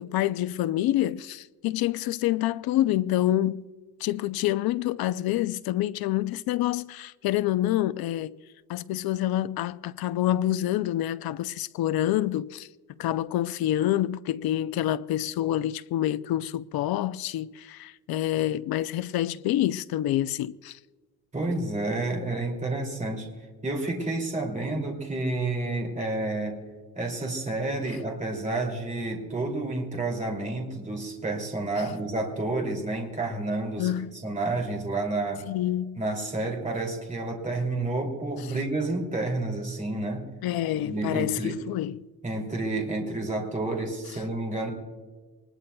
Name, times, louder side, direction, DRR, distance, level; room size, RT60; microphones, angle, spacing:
voice 1, 0.0-3.6 4.0-8.3 8.7-12.7 13.0-20.8 33.8-34.1 35.4-36.0 40.4-42.0, left 13 dB, 85° left, 0.5 m, -27 dB
voice 2, 21.3-23.3 23.6-26.6 26.9-33.9 34.2-35.4 36.0-40.3 40.7-41.6 42.2-44.7, right 2 dB, 20° right, 2.7 m, -30 dB
24.0 x 20.5 x 2.3 m
cardioid pair, 165°, 36 cm